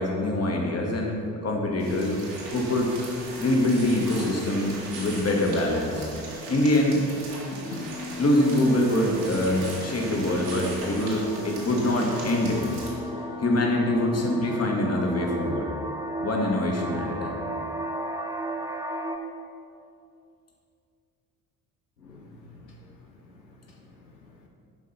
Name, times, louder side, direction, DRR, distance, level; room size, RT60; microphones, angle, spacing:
voice 1, 0.0-2.2 2.5-2.9 3.4-6.1 6.5-7.0 8.2-12.7 13.4-15.7 16.2-17.4, left 1 dB, 30° left, 0 dB, 1.8 m, -24 dB
sound 1, 1.8-12.9, right 2 dB, 70° right, 2.4 m, -39 dB
sound 2, 3.3-19.2, right 1 dB, 5° right, 0.9 m, -37 dB
sound 3, 7.5-15.5, left 3 dB, 75° left, 1.3 m, -39 dB
voice 2, 22.0-23.8 24.4-24.5, left 2 dB, 90° left, -1 dB, 0.8 m, -51 dB
12.5 x 5.4 x 4.2 m, 2.5 s
figure-of-eight pair, 50°, 50 cm